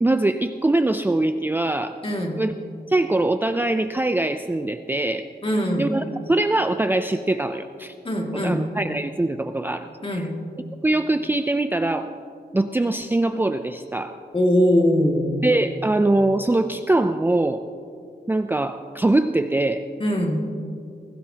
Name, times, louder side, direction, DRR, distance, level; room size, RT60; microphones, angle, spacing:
voice 1, 0.0-2.0 2.4-2.6 2.9-5.3 5.8-7.9 8.3-10.3 10.8-12.1 12.5-14.2 15.4-17.6 18.3-19.8, right 2 dB, 10° right, 8 dB, 0.4 m, -22 dB
voice 2, 2.0-2.4 5.4-5.9 8.0-8.7 10.0-10.4 14.3-15.4 20.0-20.4, equal, 35° left, 0 dB, 2.2 m, -21 dB
21.0 x 16.5 x 2.9 m, 2.5 s
wide cardioid pair, 115°, 17 cm